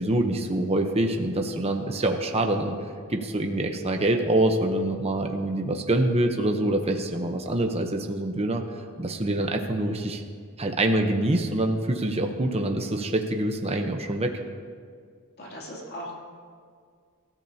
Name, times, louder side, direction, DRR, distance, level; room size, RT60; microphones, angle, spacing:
voice 1, 0.0-2.8 3.1-8.6 9.0-10.2 10.6-14.3, right 1 dB, 30° right, 3 dB, 0.9 m, -25 dB
voice 2, 15.4-16.1, equal, 45° left, -4 dB, 3.0 m, -38 dB
26.0 x 13.5 x 2.9 m, 2.1 s
head